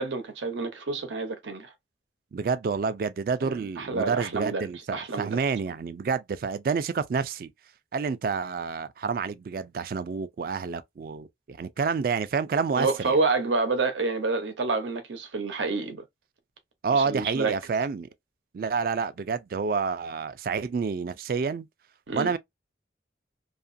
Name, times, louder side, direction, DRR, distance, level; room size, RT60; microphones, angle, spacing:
voice 1, 0.0-1.7 3.4-5.4 12.8-16.0 16.9-17.5 22.1-22.3, right 3 dB, 90° right, 0.8 m, -28 dB
voice 2, 2.3-7.5 7.9-13.2 16.8-18.1 18.5-21.7 22.1-22.4, right 5 dB, 50° right, 0.3 m, -29 dB
2.8 x 2.4 x 2.5 m
head